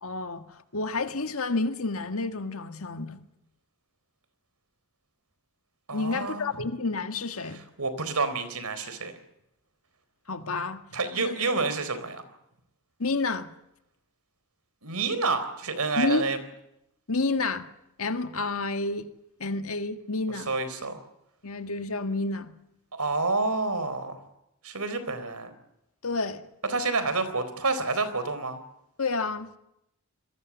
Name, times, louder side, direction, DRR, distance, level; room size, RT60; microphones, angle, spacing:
voice 1, 0.0-3.2 5.9-7.6 10.3-11.4 13.0-13.5 16.0-16.2 17.1-17.7 18.0-19.1 19.4-20.5 21.4-22.5 26.0-26.4 29.0-29.5, left 3 dB, 75° left, 1.8 m, -30 dB
voice 2, 5.9-6.5 7.8-9.1 10.9-12.2 14.8-16.4 20.5-21.0 22.9-24.2 24.6-25.5 26.7-28.6, right 3 dB, 90° right, 4.1 m, -28 dB
27.0 x 22.0 x 7.3 m
head